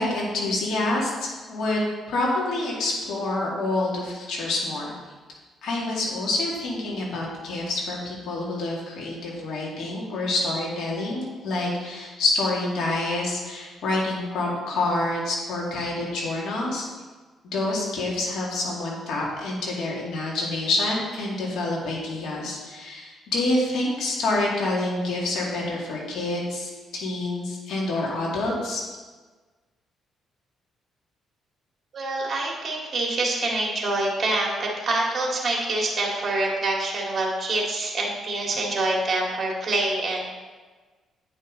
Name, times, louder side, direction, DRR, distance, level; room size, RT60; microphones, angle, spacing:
voice 1, 0.0-4.9 5.6-16.9 17.4-28.8, left 2 dB, 75° left, -3 dB, 2.3 m, -27 dB
voice 2, 31.9-40.3, right 2 dB, 40° right, -2 dB, 2.1 m, -26 dB
9.3 x 5.5 x 3.9 m, 1.4 s
cardioid pair, 90°, 0 cm